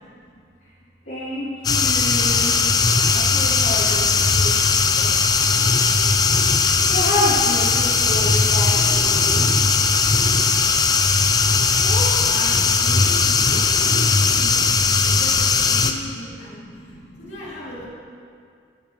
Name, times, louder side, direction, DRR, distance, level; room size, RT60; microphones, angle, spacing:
voice 1, 1.0-2.6 3.1-4.6 4.9-5.8 6.9-9.5 13.0-15.3 15.9-17.3, left 1 dB, 70° left, -12 dB, 3.0 m, -30 dB
sound 1, 1.6-15.9, left 4 dB, 20° left, 0.4 m, -18 dB
voice 2, 11.6-14.6 15.0-16.6 17.2-17.9, left 1 dB, 85° left, -7 dB, 3.1 m, -35 dB
16.5 x 8.9 x 3.2 m, 2.3 s
head